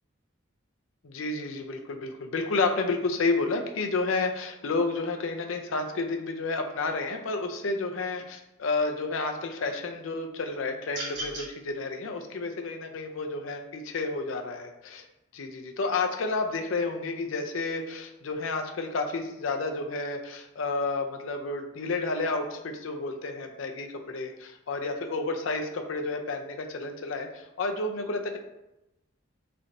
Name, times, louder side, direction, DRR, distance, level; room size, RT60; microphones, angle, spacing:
voice 1, 1.0-15.0 15.3-28.4, left 3 dB, 85° left, 4 dB, 0.5 m, -31 dB
sound 1, 10.9-11.5, right 1 dB, 65° right, 1.4 m, -35 dB
3.9 x 3.2 x 2.6 m, 0.90 s
head